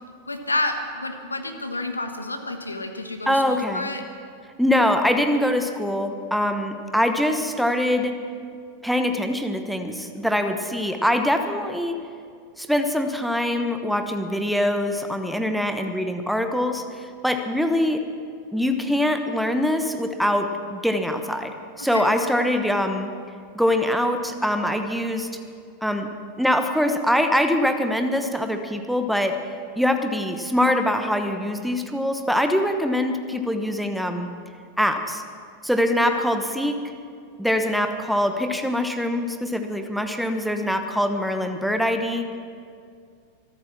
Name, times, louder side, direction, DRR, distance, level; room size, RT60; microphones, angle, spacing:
voice 1, 0.3-4.0 21.8-22.1 36.1-36.3, left 2 dB, 80° left, 7 dB, 1.3 m, -29 dB
voice 2, 3.3-3.9 4.6-8.2 8.8-12.0 12.6-18.0 18.5-23.1 23.5-25.3 25.8-26.1 26.4-29.4 29.8-34.3 34.8-35.2 35.6-36.8 37.4-42.3, left 1 dB, ahead, 7 dB, 1.1 m, -23 dB
24.5 x 8.9 x 6.1 m, 2.3 s
figure-of-eight pair, 90°, 0 cm